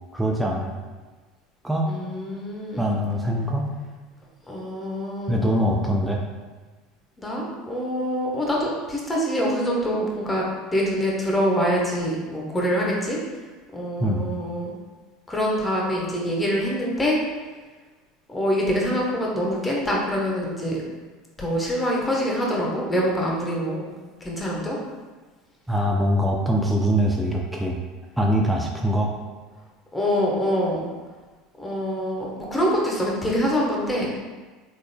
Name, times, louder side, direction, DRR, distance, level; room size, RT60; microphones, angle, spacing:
voice 1, 0.1-0.7 1.6-1.9 2.8-3.7 5.3-6.2 14.0-14.3 25.7-27.8 28.2-29.1, equal, 5° right, -1 dB, 0.5 m, -23 dB
voice 2, 1.9-2.9 4.5-5.4 7.2-13.2 13.7-14.8 15.3-17.2 18.3-20.8 21.4-23.8 24.2-24.8 29.9-30.9 31.6-34.2, equal, 15° left, -3 dB, 1.1 m, -25 dB
4.8 x 3.8 x 2.2 m, 1.3 s
figure-of-eight pair, 70°, 0 cm